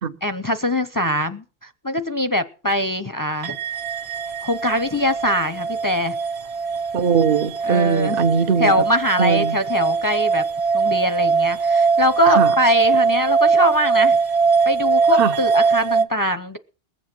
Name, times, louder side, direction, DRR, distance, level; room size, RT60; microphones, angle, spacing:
voice 1, 0.2-1.4 1.8-3.6 4.4-6.1 7.6-8.2 8.6-10.4 10.7-14.2 14.7-16.6, equal, 25° left, 0.6 m, -22 dB
sound 1, 3.4-16.0, right 5 dB, 40° right, 0.8 m, -21 dB
voice 2, 6.9-8.7 9.2-9.6 12.3-12.5 15.2-15.3, right 6 dB, 65° right, 1.1 m, -20 dB
21.0 x 7.8 x 6.1 m
omnidirectional pair, 1.1 m